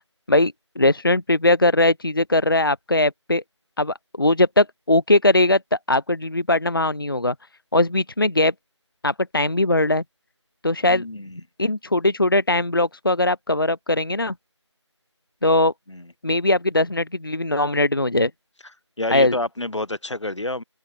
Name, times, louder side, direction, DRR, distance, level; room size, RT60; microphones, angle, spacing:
voice 1, 0.3-3.4 3.8-7.3 7.7-8.5 9.0-10.0 10.6-11.0 11.6-14.3 15.4-15.7 16.2-18.3 19.1-19.3, left 2 dB, 50° left, 0.6 m, -20 dB
voice 2, 10.9-11.4 15.9-16.1 19.0-20.6, left 2 dB, 70° left, 1.0 m, -29 dB
open air
figure-of-eight pair, 170°, 15 cm